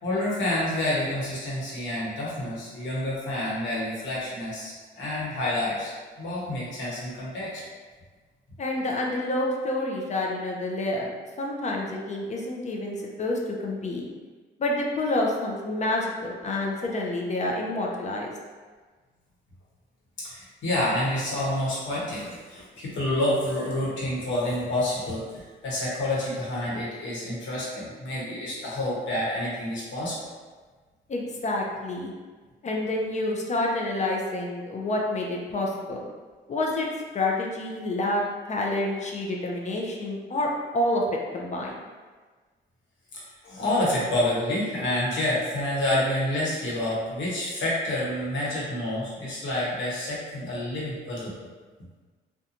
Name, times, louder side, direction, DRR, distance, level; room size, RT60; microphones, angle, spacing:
voice 1, 0.0-5.9 6.2-7.6 20.2-30.2 43.1-51.4, left 1 dB, 70° left, -6 dB, 1.0 m, -28 dB
voice 2, 8.6-11.1 11.4-14.0 14.6-18.3 31.1-32.1 32.6-36.0 36.5-36.9 37.1-38.2 38.5-41.0 41.3-41.7, left 1 dB, 35° left, -1 dB, 0.5 m, -28 dB
2.8 x 2.2 x 2.5 m, 1.4 s
cardioid pair, 90°, 20 cm